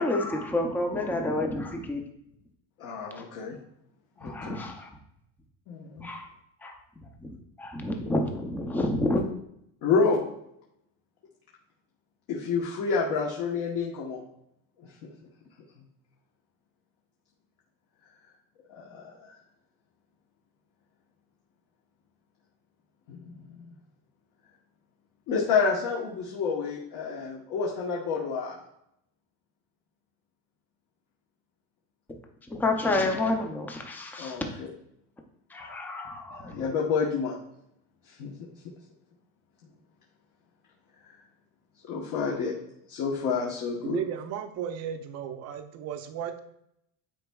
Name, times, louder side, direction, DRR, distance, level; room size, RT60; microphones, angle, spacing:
voice 1, 0.0-2.0 4.2-4.9 6.0-6.3 6.6-6.8 7.2-9.2 32.5-34.4 35.5-36.6, left 2 dB, 5° left, 3 dB, 0.4 m, -29 dB
voice 2, 2.8-3.5 4.2-4.6 5.7-6.1 9.8-10.2 12.3-14.2 18.7-19.3 23.1-23.6 25.3-28.6 34.2-34.7 36.3-37.4 38.1-38.3 41.8-42.6 42.9-44.0, left 5 dB, 55° left, -2 dB, 1.1 m, -29 dB
voice 3, 43.8-46.4, right 9 dB, 40° right, 7 dB, 0.6 m, -34 dB
9.9 x 4.5 x 2.3 m, 0.76 s
cardioid pair, 160°, 40 cm